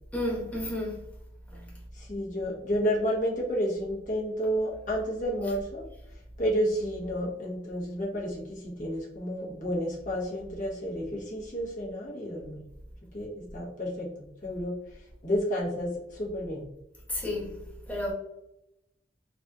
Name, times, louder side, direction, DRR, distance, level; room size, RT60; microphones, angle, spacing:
voice 1, 0.1-1.0 1.5-1.6 5.4-5.5 17.1-17.5 17.9-18.1, left 1 dB, 10° left, 1.2 m, -31 dB
voice 2, 2.0-5.9 6.4-12.6 13.1-14.7 15.2-16.6, equal, 45° left, 1.1 m, -31 dB
4.0 x 2.9 x 2.3 m
head